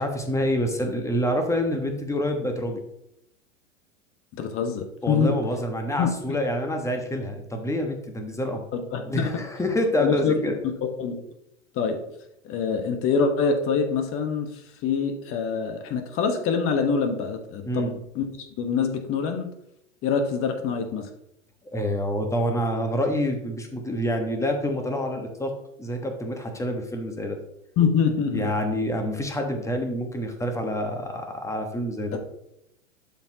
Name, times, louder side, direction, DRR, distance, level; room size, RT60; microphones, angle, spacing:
voice 1, 0.0-2.8 5.0-8.6 9.0-10.5 17.6-17.9 21.7-25.5 25.8-27.4 28.3-32.2, equal, 10° left, 4 dB, 1.3 m, -27 dB
voice 2, 4.3-5.3 6.0-6.1 8.9-9.3 10.0-10.7 11.0-11.1 11.7-12.0 12.4-19.5 20.0-21.1 27.8-28.5 32.1-32.2, left 5 dB, 35° left, 6 dB, 1.3 m, -25 dB
11.5 x 4.5 x 2.9 m, 0.79 s
figure-of-eight pair, 95°, 38 cm